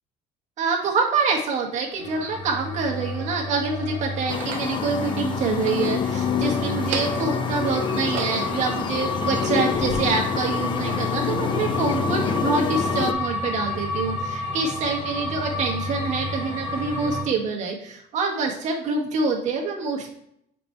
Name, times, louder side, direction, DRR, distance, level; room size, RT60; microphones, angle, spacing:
voice 1, 0.6-20.1, right 4 dB, 55° right, 0 dB, 1.5 m, -26 dB
sound 1, 1.7-1.8 2.7-3.5 4.2-4.7 5.5-6.4 6.7-7.4 7.8-8.7 9.2-10.0, right 6 dB, 75° right, 1.0 m, -36 dB
sound 2, 2.0-17.2, left 2 dB, 50° left, 2.2 m, -31 dB
sound 3, 4.3-13.1, left 7 dB, 35° left, 0.4 m, -27 dB
5.1 x 4.5 x 4.5 m, 0.72 s
cardioid pair, 140°, 14 cm